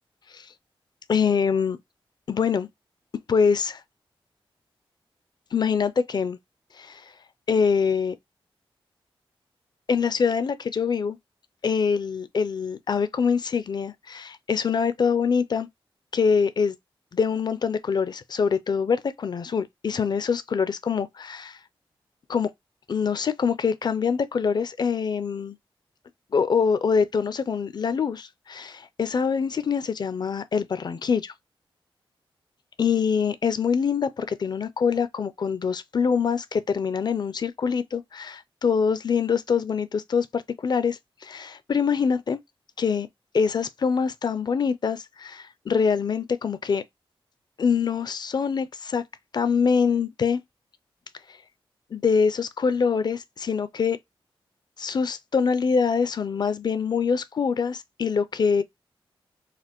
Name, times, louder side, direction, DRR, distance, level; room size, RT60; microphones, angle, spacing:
voice 1, 1.1-1.8 2.3-2.7 3.3-3.8 5.5-6.4 6.8-7.0 7.5-8.1 9.9-11.2 11.6-15.7 16.1-16.8 17.1-21.6 22.3-22.5 22.9-25.6 26.3-31.3 32.8-42.4 42.8-43.1 43.3-46.8 47.6-49.0 49.3-50.4 51.9-54.0 54.8-58.6, left 6 dB, 45° left, 0.4 m, -24 dB
4.1 x 2.4 x 2.9 m
cardioid pair, 80°, 10 cm